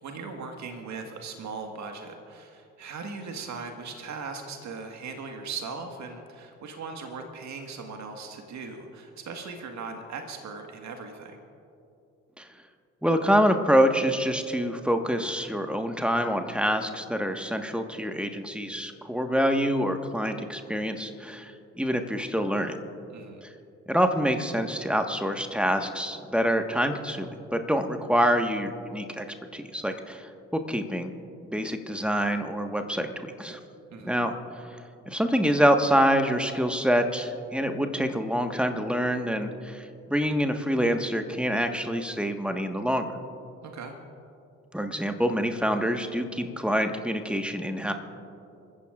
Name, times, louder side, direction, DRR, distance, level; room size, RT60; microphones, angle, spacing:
voice 1, 0.0-11.4 23.1-23.4 33.9-34.2 43.6-44.0, right 4 dB, 45° right, 4 dB, 1.8 m, -39 dB
voice 2, 13.0-21.5 21.8-22.8 23.9-29.2 29.5-30.2 30.7-31.1 31.5-33.6 34.0-34.7 35.1-39.8 40.1-43.1 44.7-47.9, equal, 5° right, 5 dB, 1.5 m, -26 dB
28.0 x 15.5 x 2.5 m, 2.7 s
figure-of-eight pair, 45°, 38 cm